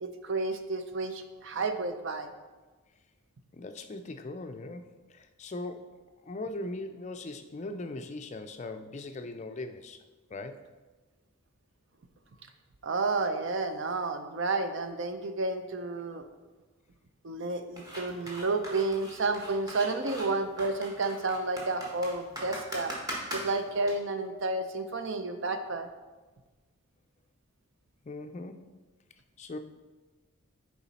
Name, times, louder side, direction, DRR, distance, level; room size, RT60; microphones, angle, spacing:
voice 1, 0.0-2.3 12.8-16.3 17.2-22.9 23.3-25.9, right 3 dB, 55° right, 8 dB, 0.5 m, -31 dB
voice 2, 3.5-6.0 6.3-10.0 10.3-10.7 28.0-28.6 29.4-29.6, left 2 dB, 30° left, 8 dB, 0.4 m, -40 dB
sound 1, 17.8-23.9, right 1 dB, 15° right, 1.2 m, -40 dB
7.0 x 4.9 x 4.1 m, 1.3 s
head